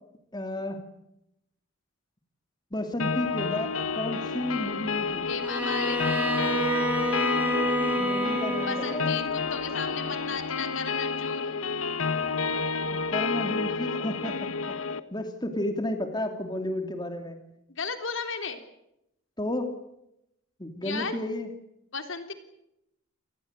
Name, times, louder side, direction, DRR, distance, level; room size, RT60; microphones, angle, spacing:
voice 1, 0.3-0.8 2.7-5.3 7.9-9.1 12.9-14.4 15.1-17.4 19.4-19.7 20.6-21.5, left 1 dB, 20° left, 6 dB, 2.8 m, -32 dB
sound 1, 3.0-15.0, left 4 dB, 85° left, 1.4 m, -30 dB
voice 2, 5.3-6.7 8.6-11.6 17.7-18.6 20.8-21.2 21.9-22.3, left 5 dB, 70° left, 7 dB, 3.5 m, -35 dB
Bowed string instrument, 5.4-9.1, equal, 10° right, 3.5 m, -28 dB
29.0 x 19.5 x 8.2 m, 0.84 s
head